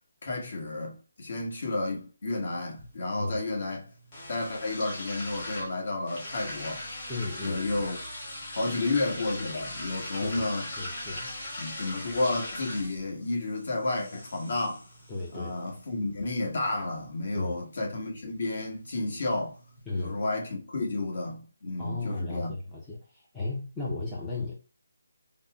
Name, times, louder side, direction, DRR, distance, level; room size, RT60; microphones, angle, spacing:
voice 1, 0.2-3.9 4.3-6.8 7.4-8.0 8.5-10.7 11.6-14.8 15.3-19.6 20.0-22.5, left 2 dB, 50° left, 1.3 m, -31 dB
sound 1, 2.3-20.3, left 1 dB, 25° left, 1.5 m, -42 dB
voice 2, 7.1-7.8 10.2-10.5 10.8-11.3 15.1-15.6 17.3-17.6 19.9-20.2 21.8-24.5, left 3 dB, 5° left, 0.5 m, -35 dB
5.1 x 2.0 x 2.3 m
hypercardioid pair, 170°, 0 cm